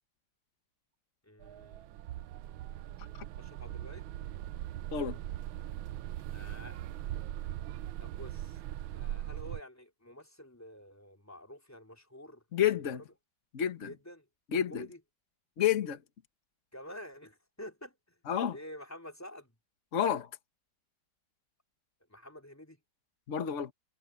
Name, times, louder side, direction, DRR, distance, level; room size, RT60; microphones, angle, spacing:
voice 1, 1.2-1.9 3.4-4.1 6.3-6.8 8.0-8.6 8.9-12.4 12.9-13.0 13.8-14.3 14.5-15.0 16.7-18.2 18.5-19.5 22.1-22.8, left 1 dB, 5° left, 3.9 m, -49 dB
sound 1, 1.4-9.6, right 13 dB, 80° right, 1.4 m, -40 dB
voice 2, 12.5-13.0 13.5-13.9 14.5-14.8 15.6-16.0 18.3-18.6 19.9-20.3 23.3-23.7, left 9 dB, 40° left, 1.5 m, -29 dB
omnidirectional pair, 2.3 m